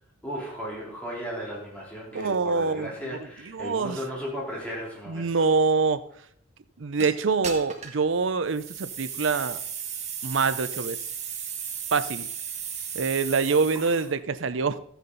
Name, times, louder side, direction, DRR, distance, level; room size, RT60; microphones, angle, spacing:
voice 1, 0.2-5.3 13.7-13.9, equal, 5° left, -5 dB, 3.7 m, -35 dB
voice 2, 2.1-2.9 3.5-4.0 5.1-6.0 6.8-9.6 10.2-11.0 11.9-12.3 12.9-14.8, right 4 dB, 70° right, 13 dB, 0.6 m, -25 dB
sound 1, 7.0-7.1 7.4-8.0 8.5-14.1, right 8 dB, 35° right, 1.5 m, -35 dB
13.5 x 8.2 x 4.0 m, 0.67 s
head